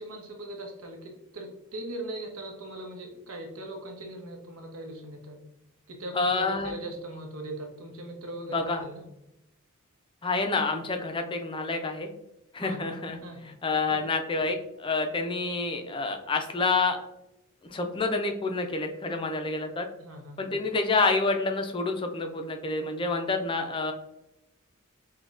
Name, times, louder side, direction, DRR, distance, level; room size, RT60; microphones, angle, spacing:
voice 1, 0.0-5.4 5.9-9.0 12.6-12.8 13.2-13.4 13.9-14.0 20.0-20.5, right 1 dB, 85° right, 2 dB, 0.9 m, -40 dB
voice 2, 6.2-6.7 8.5-8.8 10.2-12.1 12.5-13.2 13.6-17.0 17.7-19.9 20.4-23.9, left 3 dB, 25° left, 5 dB, 0.4 m, -28 dB
5.8 x 2.2 x 2.4 m, 0.88 s
head